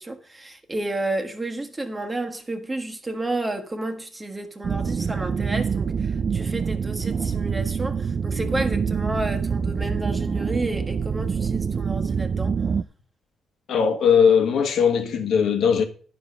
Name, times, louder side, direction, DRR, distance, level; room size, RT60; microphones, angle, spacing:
voice 1, 0.0-12.6, right 2 dB, 20° right, 1.5 m, -31 dB
sound 1, 4.6-12.8, right 6 dB, 45° right, 0.4 m, -26 dB
voice 2, 13.7-15.8, left 7 dB, 70° left, 1.4 m, -19 dB
10.5 x 5.1 x 6.6 m
cardioid pair, 90°, 0 cm